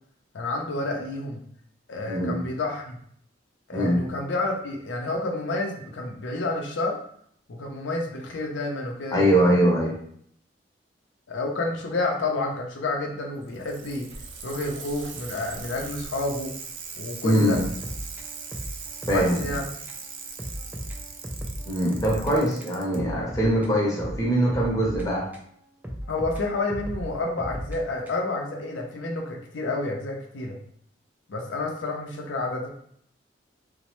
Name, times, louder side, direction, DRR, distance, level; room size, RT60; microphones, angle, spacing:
voice 1, 0.3-1.4 1.9-3.0 3.7-7.0 7.5-9.7 11.3-14.1 14.4-16.5 17.0-17.6 19.1-19.7 22.2-22.4 26.1-30.6 31.3-32.7, left 2 dB, 80° left, 0 dB, 0.5 m, -29 dB
voice 2, 2.0-2.4 3.7-4.0 9.1-10.0 17.2-17.6 19.1-19.6 21.7-25.3, right 1 dB, 20° left, -4 dB, 0.7 m, -22 dB
Bicycle, 13.4-23.0 24.1-24.2, right 5 dB, 80° right, 0.4 m, -40 dB
sound 1, 17.5-19.6 19.9-20.0 20.4-22.3 22.6-25.5 25.8-28.4, equal, 10° right, 0.3 m, -36 dB
3.1 x 2.0 x 2.9 m, 0.65 s
head